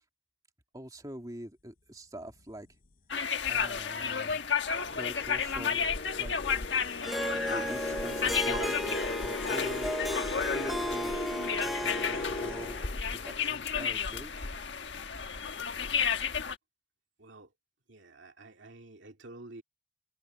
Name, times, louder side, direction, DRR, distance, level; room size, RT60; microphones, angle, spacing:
voice 1, 0.7-2.7 3.5-4.4 4.9-5.9 6.2-6.5 7.4-9.9 10.2-11.2 11.5-12.8 13.1-14.3, equal, 20° right, 2.4 m, -44 dB
sound 1, 2.3-2.6 3.4-3.5 3.9-13.7, left 2 dB, 50° left, 0.8 m, -39 dB
sound 2, 3.1-16.6, left 6 dB, 70° left, 1.4 m, -32 dB
Harp, 7.0-12.8, equal, ahead, 0.5 m, -35 dB
voice 2, 17.2-17.5 17.9-19.6, right 2 dB, 80° right, 2.4 m, -50 dB
head